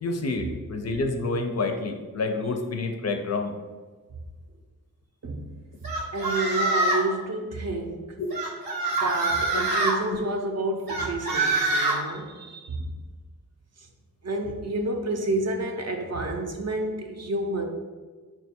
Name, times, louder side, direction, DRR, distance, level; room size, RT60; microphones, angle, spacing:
voice 1, 0.0-3.5 8.2-8.3, left 3 dB, 50° left, 5 dB, 0.4 m, -28 dB
sound 1, 5.8-7.1 8.3-10.0 10.9-12.0, right 2 dB, 80° right, 0.9 m, -25 dB
voice 2, 6.1-8.2 8.9-13.0 14.2-17.6, right 2 dB, 45° right, 3 dB, 0.5 m, -30 dB
4.4 x 2.2 x 4.2 m, 1.4 s
wide cardioid pair, 125°, 35 cm